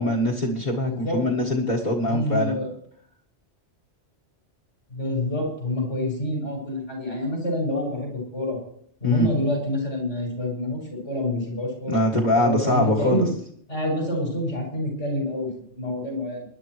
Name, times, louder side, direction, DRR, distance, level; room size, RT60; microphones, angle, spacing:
voice 1, 0.0-2.6 9.0-9.3 11.9-13.3, left 1 dB, 40° left, -2 dB, 1.9 m, -23 dB
voice 2, 0.8-1.2 2.0-2.7 4.9-8.6 9.0-11.9 12.4-13.3 13.7-16.4, left 1 dB, 80° left, -2 dB, 6.4 m, -27 dB
24.5 x 11.0 x 3.2 m, 0.64 s
omnidirectional pair, 1.2 m